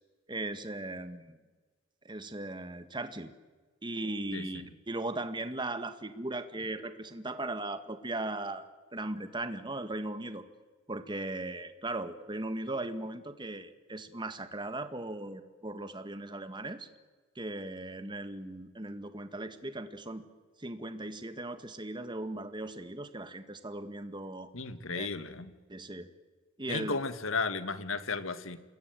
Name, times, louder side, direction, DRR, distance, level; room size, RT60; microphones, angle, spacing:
voice 1, 0.3-1.4 2.1-3.3 3.8-8.7 8.9-10.4 10.9-16.9 17.4-20.2 20.6-24.5 25.0-25.1 25.7-26.1 26.6-27.0, right 2 dB, 25° right, 9 dB, 1.7 m, -38 dB
voice 2, 24.5-25.5 26.7-28.6, left 4 dB, 85° left, 11 dB, 1.9 m, -34 dB
27.5 x 21.0 x 9.2 m, 1.3 s
head